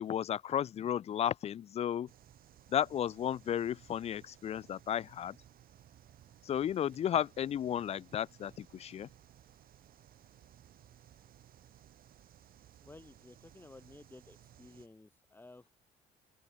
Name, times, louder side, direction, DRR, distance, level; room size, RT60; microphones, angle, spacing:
voice 1, 0.0-2.1 2.7-5.4 6.4-9.1, left 10 dB, 40° left, 0.4 m, -33 dB
sound 1, 2.1-14.9, right 11 dB, 60° right, 2.3 m, -60 dB
voice 2, 12.8-15.7, left 2 dB, 10° left, 2.8 m, -55 dB
open air
cardioid pair, 110°, 17 cm